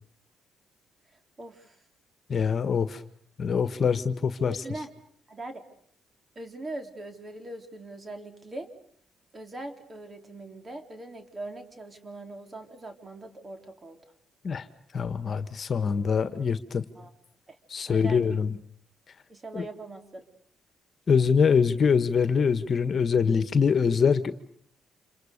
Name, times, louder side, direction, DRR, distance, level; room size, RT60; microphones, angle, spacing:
voice 1, 1.4-1.8 4.5-4.9 5.3-5.6 6.4-8.7 9.3-14.0 16.9-17.1 17.5-17.6 17.9-18.2 19.3-20.2, right 2 dB, 30° right, 6 dB, 4.0 m, -41 dB
voice 2, 2.3-3.0 3.4-4.5 14.4-14.6 14.9-16.8 17.7-18.6 19.5-19.6 21.1-24.3, left 6 dB, 45° left, 12 dB, 1.6 m, -24 dB
30.0 x 27.5 x 6.8 m, 0.63 s
cardioid pair, 90°, 0 cm